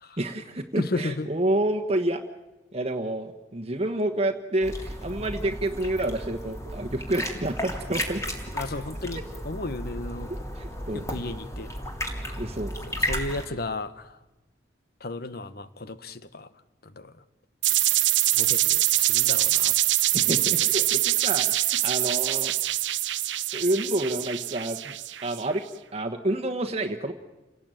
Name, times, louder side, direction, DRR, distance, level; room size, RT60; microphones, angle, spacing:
voice 1, 0.2-2.2 2.7-8.6 10.5-11.1 12.4-12.7 20.1-22.5 23.5-24.9 25.2-25.6 25.9-27.1, right 1 dB, 35° right, 4 dB, 1.3 m, -29 dB
voice 2, 0.8-1.3 8.5-10.3 10.9-11.7 12.9-14.2 15.0-16.5 16.8-17.2 18.3-19.8 20.2-20.4, left 2 dB, 55° left, 14 dB, 1.2 m, -34 dB
sound 1, 4.6-13.5, equal, 15° left, 3.2 m, -34 dB
sound 2, 13.1-15.2, equal, 15° right, 1.2 m, -41 dB
sound 3, 17.6-25.4, right 15 dB, 85° right, 0.8 m, -24 dB
28.5 x 18.5 x 9.1 m, 1.1 s
head